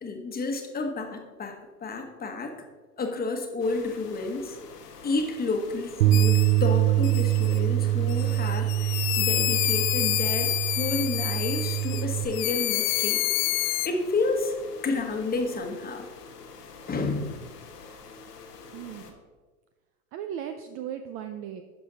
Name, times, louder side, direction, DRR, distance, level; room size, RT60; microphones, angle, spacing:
voice 1, 0.0-1.5 1.8-2.5 3.0-4.6 5.0-10.5 10.8-13.2 13.8-14.5 14.8-16.1 16.9-17.5, left 3 dB, 20° left, 4 dB, 1.2 m, -30 dB
sound 1, 3.6-19.1, left 4 dB, 85° left, 1.4 m, -47 dB
Bass guitar, 6.0-12.3, right 15 dB, 85° right, 0.6 m, -24 dB
sound 2, 6.1-6.6 7.0-7.6 8.1-12.0 12.3-13.9, left 18 dB, 60° left, 0.5 m, -28 dB
voice 2, 18.7-19.2 20.1-21.6, right 9 dB, 30° right, 8 dB, 0.4 m, -37 dB
12.0 x 4.9 x 4.0 m, 1.4 s
hypercardioid pair, 100°, 47 cm